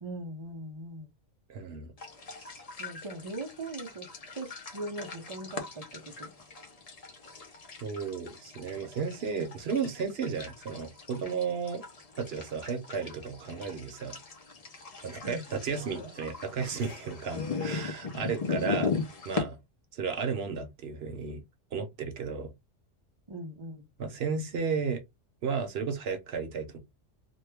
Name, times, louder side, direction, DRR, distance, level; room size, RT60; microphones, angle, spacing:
voice 1, 0.0-1.1 2.4-4.1 4.3-6.3 15.2-15.5 18.5-18.8 23.3-23.9, right 2 dB, 40° right, 0.4 m, -40 dB
voice 2, 1.5-1.9 7.8-11.8 12.2-14.2 15.0-18.9 19.2-19.6 19.9-21.4 21.7-22.5 24.0-25.0 25.4-26.8, right 5 dB, 60° right, 0.9 m, -33 dB
sound 1, 2.0-19.4, left 4 dB, 40° left, 0.6 m, -39 dB
sound 2, 15.6-18.6, left 1 dB, 60° left, 1.6 m, -50 dB
3.0 x 2.2 x 3.3 m
omnidirectional pair, 1.3 m